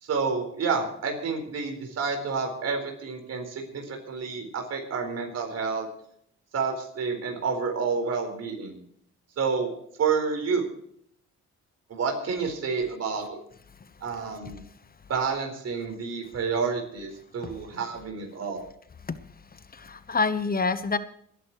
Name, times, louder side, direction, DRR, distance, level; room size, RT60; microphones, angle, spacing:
voice 1, 0.0-5.9 6.5-8.8 9.4-9.7 10.0-10.6 11.9-13.4 14.0-14.6 15.1-18.6, right 5 dB, 55° right, 4 dB, 4.4 m, -29 dB
voice 2, 19.7-21.0, left 4 dB, 30° left, 12 dB, 1.0 m, -27 dB
27.0 x 11.0 x 3.1 m, 0.68 s
cardioid pair, 90°, 30 cm